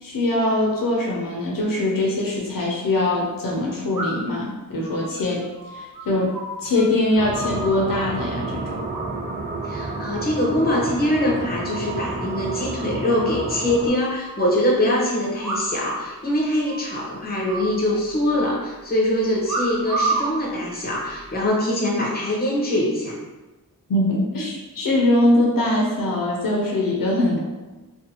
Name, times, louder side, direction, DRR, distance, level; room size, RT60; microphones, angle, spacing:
voice 1, 0.0-5.4 5.7-8.8 23.9-27.4, left 1 dB, 70° left, -3 dB, 0.6 m, -22 dB
sound 1, 2.1-2.2 3.9-4.4 4.8-6.8 7.1-8.1 8.9-9.4 9.7-10.1 10.5-11.1 11.4-11.5 11.7-11.8 12.1-12.2 12.5-12.6 13.2-14.3 15.4-16.3 16.6-17.0 17.5-18.4 19.4-20.3 21.1-21.4, right 2 dB, 60° right, 0.8 m, -30 dB
sound 2, 7.1-13.9, right 3 dB, 30° right, 0.4 m, -30 dB
voice 2, 9.6-23.2, left 1 dB, 25° left, -3 dB, 0.7 m, -23 dB
2.5 x 2.4 x 2.7 m, 1.2 s
wide cardioid pair, 95°, 35 cm